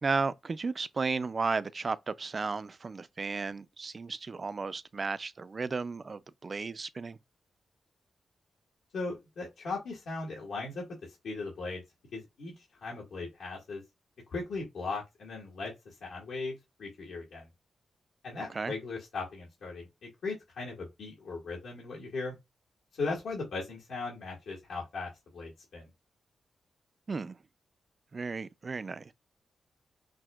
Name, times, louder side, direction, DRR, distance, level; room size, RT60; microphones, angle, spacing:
voice 1, 0.0-7.2 18.4-18.7 27.1-27.4 28.1-29.1, right 4 dB, 35° right, 0.3 m, -34 dB
voice 2, 8.9-10.8 11.2-11.8 12.1-12.5 12.8-13.8 14.3-17.5 18.2-22.4 23.0-25.9, left 3 dB, 85° left, 2.0 m, -38 dB
6.0 x 2.7 x 2.3 m
wide cardioid pair, 125°, 0 cm